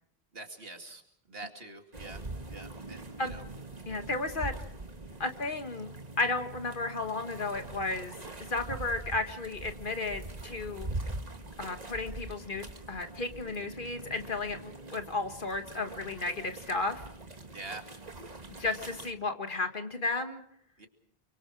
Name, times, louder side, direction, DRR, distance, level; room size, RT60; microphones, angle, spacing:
voice 1, 0.3-1.0 1.3-2.2 2.5-3.4 17.5-17.9 20.8-20.9, right 2 dB, 70° right, 4 dB, 2.7 m, -45 dB
sound 1, 1.9-19.1, right 2 dB, 40° right, 1.7 m, -43 dB
voice 2, 3.9-4.5 5.2-5.9 6.2-8.1 8.4-10.9 11.6-17.0 18.6-20.4, left 3 dB, 55° left, 6 dB, 1.9 m, -33 dB
30.0 x 24.0 x 4.8 m, 0.67 s
omnidirectional pair, 1.0 m